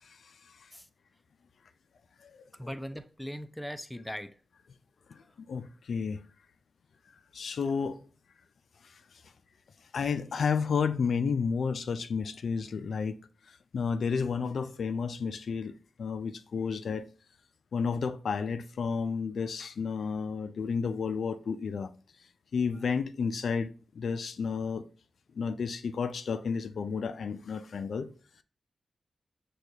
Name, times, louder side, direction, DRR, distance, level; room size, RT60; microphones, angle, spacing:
voice 1, 2.5-4.4 5.2-5.3, equal, 10° left, 0.5 m, -40 dB
voice 2, 5.1-6.2 7.3-8.0 8.8-9.0 9.9-13.2 13.5-17.1 17.7-21.9 22.5-24.9 25.4-28.1, left 5 dB, 75° left, 0.3 m, -31 dB
6.2 x 2.3 x 2.7 m
cardioid pair, 60°, 0 cm